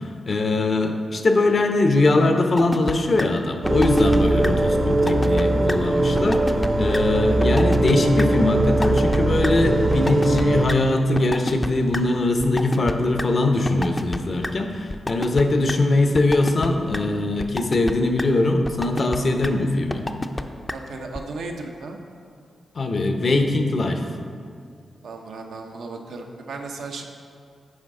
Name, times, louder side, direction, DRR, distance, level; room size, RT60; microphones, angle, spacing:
voice 1, 0.0-6.4 6.8-20.1 22.7-24.0, left 2 dB, 55° left, 5 dB, 0.7 m, -21 dB
sound 1, 2.6-2.9 3.2-3.3 3.7-4.2 4.4-4.5 4.9-5.4 5.7-5.8 6.1-6.7 6.9-7.0 7.4-8.2 8.6-9.2 9.4-9.5 9.9-10.7 11.2-12.0 12.4-13.2 13.7-14.2 14.4-14.5 14.9-15.4 15.7-15.8 16.1-16.7 16.9-17.0 17.4-17.9 18.2-18.3 18.6-19.2 19.4-19.5 19.9-20.4 20.7-20.8 21.1-21.2, left 1 dB, 20° left, 0.5 m, -27 dB
sound 2, 3.6-10.7, right 2 dB, 40° right, 0.6 m, -20 dB
voice 2, 20.7-22.0 25.0-27.0, right 3 dB, 80° right, 2 dB, 0.7 m, -35 dB
9.6 x 4.6 x 3.7 m, 2.2 s
supercardioid pair, 45°, 0 cm